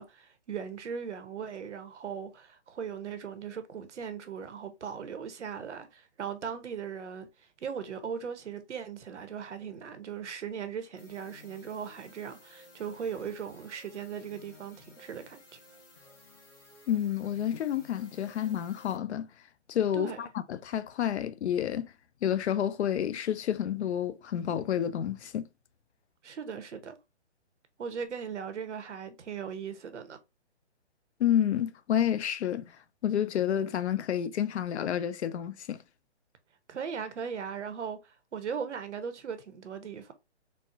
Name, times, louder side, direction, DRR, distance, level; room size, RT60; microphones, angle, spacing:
voice 1, 0.0-7.3 7.6-15.6 19.9-20.3 26.2-27.0 27.8-30.2 36.7-40.1, right 7 dB, 90° right, 0.8 m, -38 dB
sound 1, 11.0-19.0, left 3 dB, 20° left, 0.6 m, -56 dB
voice 2, 16.9-19.3 19.7-21.9 22.2-25.5 31.2-32.6 33.0-35.8, left 10 dB, 70° left, 0.5 m, -29 dB
4.2 x 2.0 x 2.4 m
hypercardioid pair, 155°, 35 cm